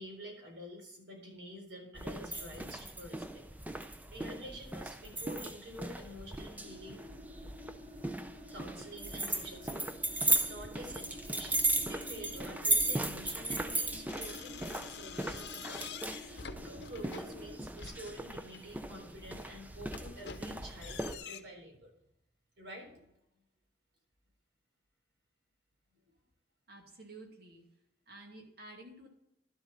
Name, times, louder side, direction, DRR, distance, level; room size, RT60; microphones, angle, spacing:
voice 1, 0.0-3.4 3.8-7.1 8.5-21.9 22.6-23.1 26.0-26.1, equal, 80° right, 1 dB, 4.1 m, -49 dB
sound 1, 2.0-21.2, right 2 dB, 10° right, 0.5 m, -36 dB
sound 2, 6.6-17.6, left 1 dB, 30° right, 2.6 m, -51 dB
sound 3, 14.1-18.7 19.2-21.4, left 6 dB, 65° left, 0.8 m, -47 dB
voice 2, 26.7-27.7 28.1-29.1, right 2 dB, 60° right, 2 dB, 2.3 m, -51 dB
11.5 x 7.5 x 4.0 m, 0.81 s
head